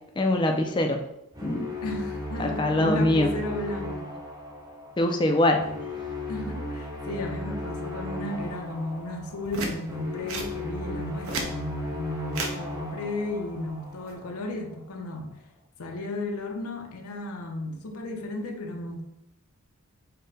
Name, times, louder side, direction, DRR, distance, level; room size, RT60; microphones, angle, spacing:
voice 1, 0.2-1.0 1.4-1.7 2.4-3.3 5.0-5.8, left 1 dB, 20° left, 3 dB, 0.3 m, -23 dB
sound 1, 1.3-14.4, left 1 dB, 15° right, 0.6 m, -36 dB
voice 2, 1.8-4.1 6.3-15.4 15.8-19.1, left 1 dB, 80° left, 3 dB, 0.6 m, -34 dB
sound 2, 9.5-9.8 10.3-10.5 11.1-11.5 12.3-12.6 13.9-14.1, right 3 dB, 70° right, 0.7 m, -32 dB
5.4 x 2.1 x 4.0 m, 0.82 s
head